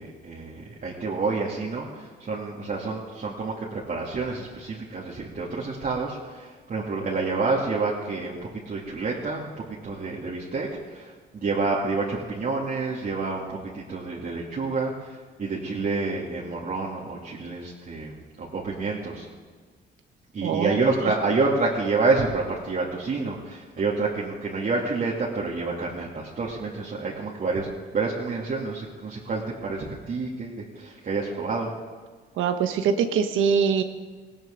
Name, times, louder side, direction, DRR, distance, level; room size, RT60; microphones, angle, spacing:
voice 1, 0.0-8.4 8.7-19.3 20.3-27.7 27.9-31.7, right 3 dB, 45° right, -5 dB, 2.5 m, -28 dB
voice 2, 20.4-20.8 32.4-33.8, right 7 dB, 85° right, 6 dB, 1.1 m, -23 dB
18.5 x 17.0 x 3.9 m, 1.4 s
cardioid pair, 90°, 20 cm